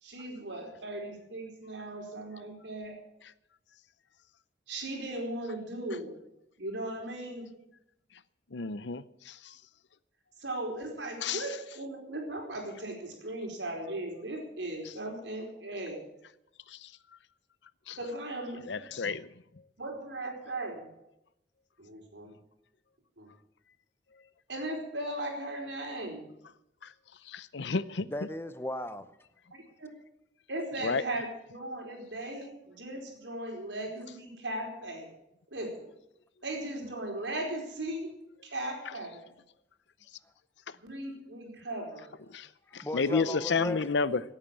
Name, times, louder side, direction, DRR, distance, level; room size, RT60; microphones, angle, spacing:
voice 1, 0.0-3.0 4.7-6.2 6.6-7.5 10.4-16.0 18.0-19.1 19.8-20.9 21.8-22.4 23.2-23.3 24.5-26.3 29.5-29.9 30.5-35.1 35.5-35.9 36.4-38.1 38.4-39.2 40.8-42.1 43.1-43.7, right 1 dB, 80° right, 4.7 m, -38 dB
voice 2, 8.5-9.3 11.2-11.4 17.9-18.0 18.7-19.3 27.3-28.1 30.8-31.0 42.3-42.5 42.7-44.2, left 4 dB, 75° left, 0.7 m, -30 dB
voice 3, 28.0-29.1 42.8-43.9, left 1 dB, 15° left, 0.7 m, -36 dB
17.0 x 8.8 x 7.3 m
head